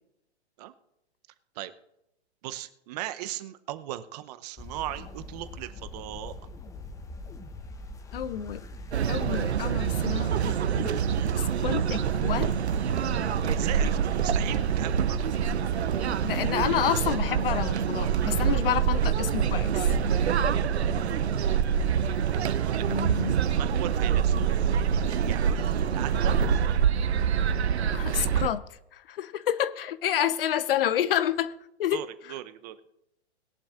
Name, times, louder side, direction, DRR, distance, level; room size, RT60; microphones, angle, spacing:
voice 1, 2.4-6.3 13.5-15.3 20.6-21.2 21.4-21.6 22.4-23.1 23.5-27.2 31.9-32.8, right 14 dB, 35° right, 0.8 m, -39 dB
sound 1, 4.6-20.2, left 3 dB, 10° left, 0.7 m, -42 dB
voice 2, 8.1-8.6 9.1-11.0 11.4-12.5 16.2-19.9 22.9-23.4 27.9-28.6 28.9-31.5 31.8-32.0, left 10 dB, 55° left, 0.8 m, -29 dB
sound 2, 8.9-28.5, right 8 dB, 75° right, 0.8 m, -26 dB
20.0 x 11.5 x 2.5 m
hypercardioid pair, 120°, 33 cm